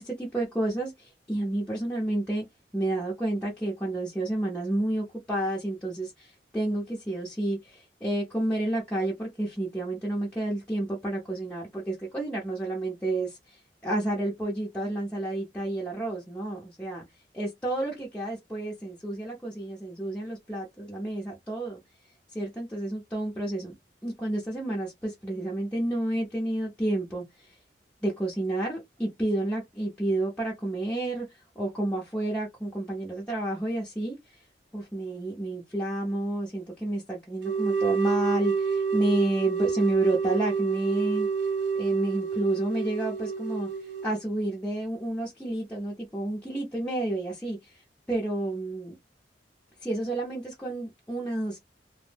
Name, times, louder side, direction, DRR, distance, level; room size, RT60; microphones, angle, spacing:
voice 1, 0.0-2.4 2.7-17.0 17.3-21.8 22.3-23.7 24.0-27.6 28.0-34.4 34.7-41.3 41.7-47.8 48.1-48.9 49.8-51.6, right 1 dB, 5° left, 0.6 m, -30 dB
sound 1, 37.4-44.2, right 5 dB, 85° right, 0.7 m, -28 dB
2.6 x 2.0 x 3.2 m
head